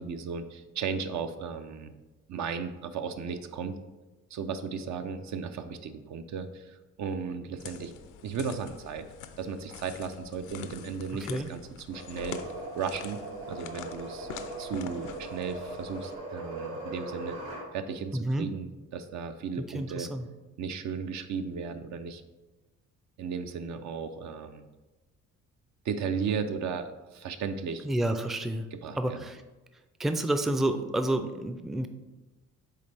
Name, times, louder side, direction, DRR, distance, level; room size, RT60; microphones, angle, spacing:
voice 1, 0.0-1.9 2.3-3.8 4.3-7.9 8.2-9.1 9.4-12.4 12.8-13.2 13.5-14.3 14.6-17.4 17.7-20.1 20.6-22.2 23.2-24.7 25.8-27.9 28.7-29.2, right 6 dB, 70° right, 8 dB, 0.6 m, -35 dB
sound 1, 7.6-16.2, left 8 dB, 80° left, 0.6 m, -45 dB
sound 2, 11.9-17.7, right 2 dB, 90° right, 2.1 m, -39 dB
voice 2, 18.1-18.5 19.7-20.3 27.8-28.7 29.0-29.4 30.0-31.9, right 1 dB, ahead, 8 dB, 0.4 m, -29 dB
8.4 x 3.3 x 3.4 m, 1.1 s
cardioid pair, 90°, 30 cm